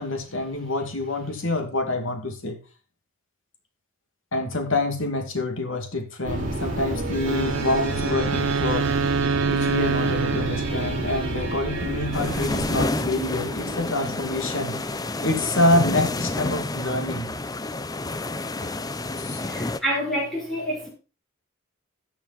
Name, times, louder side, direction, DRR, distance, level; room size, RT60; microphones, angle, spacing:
voice 1, 0.0-2.6 4.3-8.9 9.5-14.8 15.2-17.3 19.2-19.4, left 2 dB, 70° left, 2.4 m, -26 dB
sound 1, 6.2-15.5, right 2 dB, 40° right, 4.4 m, -30 dB
Wind instrument woodwind instrument, 7.2-11.4, right 5 dB, 75° right, 0.5 m, -26 dB
sound 2, 12.1-19.8, left 2 dB, 20° left, 0.6 m, -29 dB
voice 2, 19.4-20.9, equal, ahead, 5.8 m, -28 dB
13.5 x 7.2 x 4.3 m
head